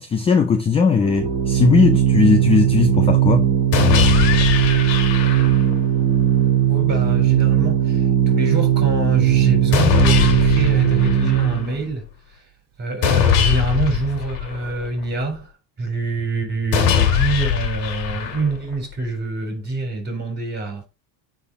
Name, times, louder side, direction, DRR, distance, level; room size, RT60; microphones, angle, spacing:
voice 1, 0.0-3.5, left 5 dB, 15° left, 0.3 m, -18 dB
Organ, 1.0-11.8, right 10 dB, 50° right, 2.0 m, -18 dB
sound 1, 3.7-5.7 9.7-11.7 13.0-15.0 16.7-18.7, left 9 dB, 65° left, 2.1 m, -21 dB
voice 2, 6.7-12.1 12.8-15.5 15.8-20.9, right 2 dB, 20° right, 3.7 m, -25 dB
9.5 x 4.2 x 4.2 m
supercardioid pair, 140°, 50 cm